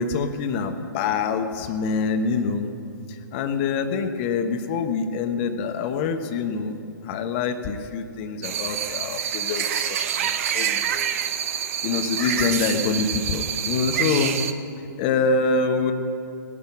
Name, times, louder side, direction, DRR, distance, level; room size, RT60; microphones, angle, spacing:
voice 1, 0.0-2.7 3.1-6.8 7.0-11.1 11.8-14.4 15.0-15.9, left 5 dB, 35° left, 7 dB, 1.1 m, -25 dB
sound 1, 8.4-14.5, right 9 dB, 45° right, 0.7 m, -27 dB
17.0 x 11.0 x 6.1 m, 2.5 s
figure-of-eight pair, 115°, 11 cm